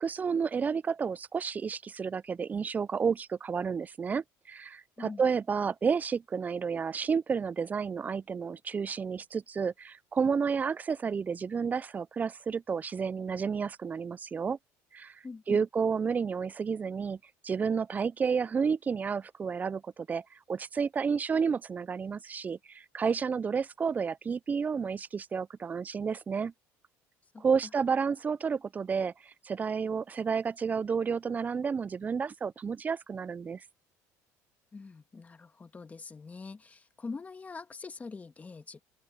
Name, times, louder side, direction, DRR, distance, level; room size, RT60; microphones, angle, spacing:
voice 1, 0.0-14.6 14.9-15.1 15.5-17.2 17.4-26.5 27.4-29.1 29.4-33.6, right 6 dB, 25° right, 0.3 m, -31 dB
voice 2, 15.2-15.6 27.3-27.5 34.7-38.8, left 4 dB, 20° left, 1.9 m, -43 dB
open air
supercardioid pair, 105°, 7 cm